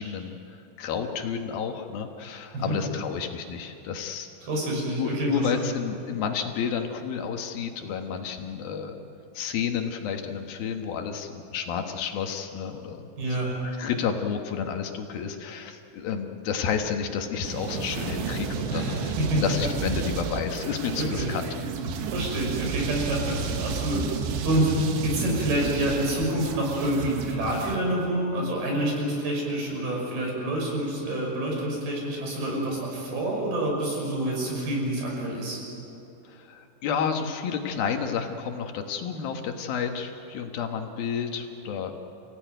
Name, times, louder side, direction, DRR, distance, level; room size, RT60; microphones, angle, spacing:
voice 1, 0.0-4.3 5.0-9.0 9.3-21.5 36.2-41.9, left 7 dB, 65° left, 4 dB, 2.9 m, -31 dB
voice 2, 4.4-5.7 13.2-13.5 18.7-19.7 21.0-21.3 22.1-24.1 24.4-35.6, right 1 dB, 65° right, -1 dB, 7.7 m, -27 dB
sound 1, 17.4-27.8, right 5 dB, 85° right, 3.7 m, -32 dB
29.5 x 17.0 x 9.2 m, 2.8 s
omnidirectional pair, 4.9 m